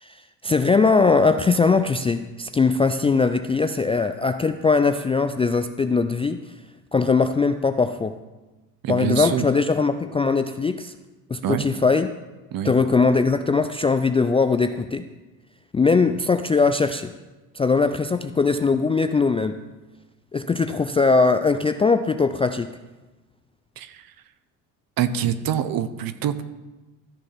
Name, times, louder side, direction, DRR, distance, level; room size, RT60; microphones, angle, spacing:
voice 1, 0.0-6.4 6.9-8.2 8.9-11.0 11.3-12.1 12.6-15.1 15.7-17.1 17.5-19.6 20.3-22.8, left 4 dB, 15° left, 8 dB, 0.3 m, -20 dB
voice 2, 8.8-9.4 11.4-11.7 12.5-12.7 23.8-24.1 25.0-26.4, right 9 dB, 45° right, 13 dB, 0.9 m, -25 dB
13.5 x 6.5 x 5.8 m, 1.2 s
hypercardioid pair, 65°, 47 cm